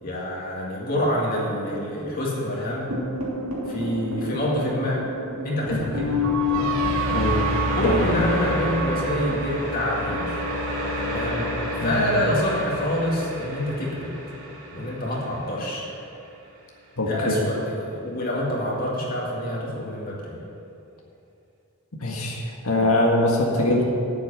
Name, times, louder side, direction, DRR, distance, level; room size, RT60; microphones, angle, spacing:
voice 1, 0.0-2.9 3.7-5.0 5.4-6.2 6.5-6.8 7.8-10.5 11.0-11.5 11.8-14.1 14.7-15.8 17.0-20.4, left 1 dB, 45° left, -4 dB, 2.1 m, -26 dB
sound 1, 2.9-15.1, equal, 90° right, 3.0 m, -28 dB
voice 2, 17.0-17.4 22.0-23.8, left 1 dB, 80° left, -2 dB, 1.7 m, -22 dB
8.9 x 8.0 x 9.0 m, 2.7 s
head